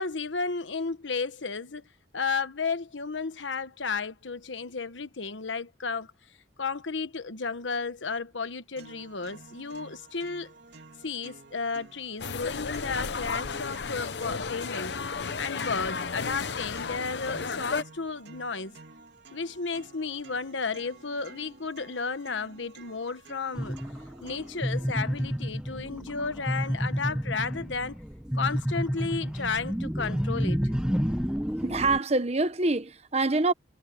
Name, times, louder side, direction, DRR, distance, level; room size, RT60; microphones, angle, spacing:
voice 1, 0.0-1.8 2.1-6.1 6.6-10.5 11.0-15.0 15.4-18.8 19.3-23.8 24.2-28.0 28.3-30.6, left 4 dB, 85° left, 1.3 m, -33 dB
sound 1, 8.8-24.8, right 3 dB, 65° right, 2.2 m, -51 dB
sound 2, 12.2-17.8, left 5 dB, 65° left, 0.8 m, -33 dB
sound 3, 23.5-32.0, equal, 5° right, 0.9 m, -30 dB
voice 2, 31.6-33.5, right 3 dB, 35° right, 1.1 m, -25 dB
head